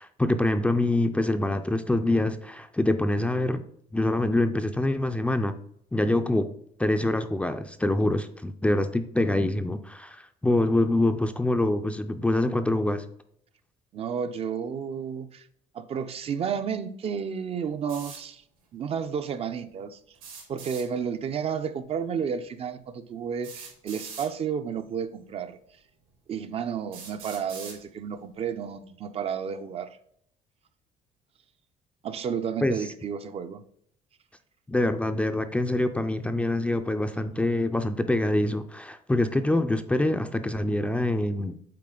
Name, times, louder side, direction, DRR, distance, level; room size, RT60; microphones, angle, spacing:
voice 1, 0.0-3.6 3.9-5.6 5.9-6.5 6.8-13.0 32.6-32.8 34.7-41.6, left 1 dB, 10° left, 8 dB, 0.4 m, -25 dB
voice 2, 13.9-15.5 15.7-18.4 18.7-20.0 20.5-25.6 26.3-29.9 32.0-33.6, right 7 dB, 40° right, 10 dB, 0.5 m, -32 dB
sound 1, 17.9-18.2 20.1-20.9 22.3-22.4 23.4-24.3 25.3-25.4 26.1-26.2 26.9-27.8, right 5 dB, 80° right, 2.6 m, -42 dB
7.5 x 4.3 x 3.8 m, 0.67 s
cardioid pair, 125°, 15 cm